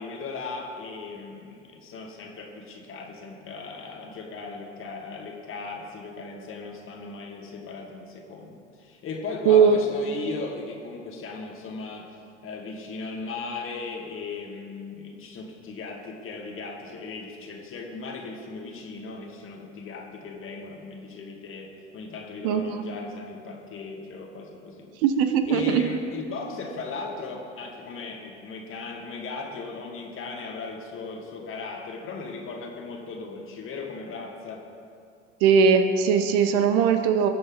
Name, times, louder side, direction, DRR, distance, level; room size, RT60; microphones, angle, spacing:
voice 1, 0.0-24.9 25.5-34.6, left 4 dB, 35° left, 1 dB, 2.2 m, -37 dB
voice 2, 22.4-22.8 25.0-25.9 35.4-37.3, right 6 dB, 50° right, 8 dB, 0.9 m, -20 dB
21.5 x 7.8 x 4.0 m, 2.4 s
figure-of-eight pair, 75°, 36 cm